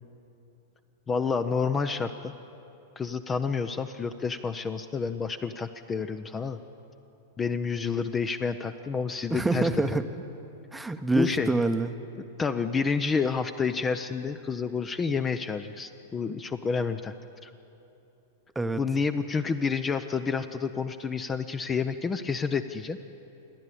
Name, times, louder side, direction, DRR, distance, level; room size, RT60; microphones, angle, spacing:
voice 1, 1.1-2.3 3.0-6.6 7.4-9.7 11.1-11.5 12.4-17.1 17.4-17.5 18.8-23.0, left 5 dB, 20° left, 10 dB, 0.6 m, -29 dB
voice 2, 9.3-10.0 10.7-11.9 18.5-18.8, right 2 dB, 5° right, 9 dB, 0.9 m, -26 dB
28.0 x 11.0 x 8.5 m, 2.9 s
figure-of-eight pair, 95°, 0 cm